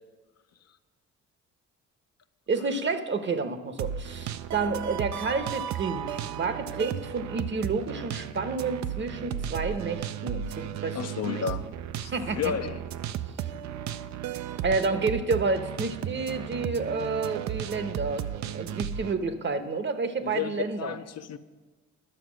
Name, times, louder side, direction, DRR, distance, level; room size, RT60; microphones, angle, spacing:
voice 1, 2.5-11.0 11.2-11.4 12.1-12.5 14.6-21.0, right 4 dB, 40° right, 10 dB, 0.9 m, -30 dB
sound 1, 3.8-19.1, right 10 dB, 65° right, 0.5 m, -35 dB
voice 2, 10.9-11.7 12.0-12.8 20.2-21.4, left 8 dB, 55° left, 9 dB, 0.6 m, -32 dB
11.0 x 6.8 x 6.2 m, 1.3 s
cardioid pair, 90°, 30 cm